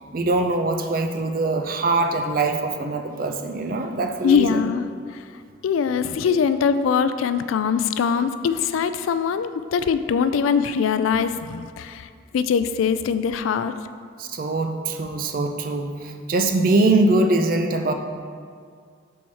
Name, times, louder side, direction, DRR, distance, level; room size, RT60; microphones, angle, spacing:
voice 1, 0.1-4.6 14.2-17.9, right 2 dB, 45° right, 5 dB, 0.4 m, -22 dB
voice 2, 4.2-4.8 5.6-13.7, left 6 dB, 90° left, 11 dB, 0.3 m, -22 dB
6.2 x 4.5 x 4.2 m, 2.1 s
head